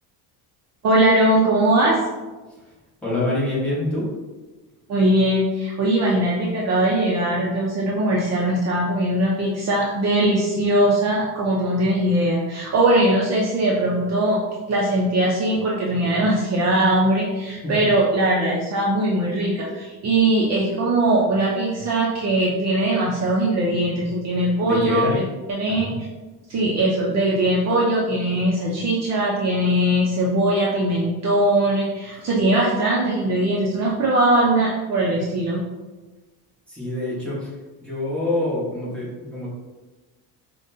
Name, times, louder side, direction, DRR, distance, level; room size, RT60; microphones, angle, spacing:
voice 1, 0.8-2.0 4.9-14.4 14.7-26.0 26.5-35.6, right 1 dB, 40° right, -3 dB, 0.5 m, -20 dB
voice 2, 3.0-4.1 17.6-17.7 24.6-25.2 25.7-25.9 32.1-32.2 36.7-37.5 37.8-39.5, left 2 dB, 5° left, -8 dB, 1.1 m, -26 dB
5.0 x 2.2 x 2.6 m, 1.2 s
cardioid pair, 140°, 40 cm